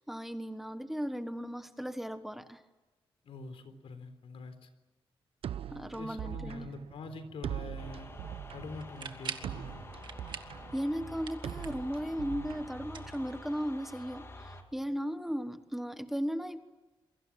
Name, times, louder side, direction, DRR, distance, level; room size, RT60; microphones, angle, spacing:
voice 1, 0.0-2.6 5.7-6.7 10.7-16.6, equal, 5° right, 9 dB, 1.3 m, -36 dB
voice 2, 3.2-4.7 6.0-8.1 8.5-9.8, left 3 dB, 85° left, 10 dB, 3.9 m, -45 dB
sound 1, 5.4-13.4, right 10 dB, 85° right, 0.8 m, -42 dB
sound 2, 7.8-14.6, left 1 dB, 30° left, 3.0 m, -48 dB
sound 3, 8.8-9.6 10.0-10.6 10.9-11.9 12.8-13.8, right 6 dB, 60° right, 1.9 m, -43 dB
28.0 x 23.5 x 7.6 m, 1.1 s
wide cardioid pair, 150°, 9 cm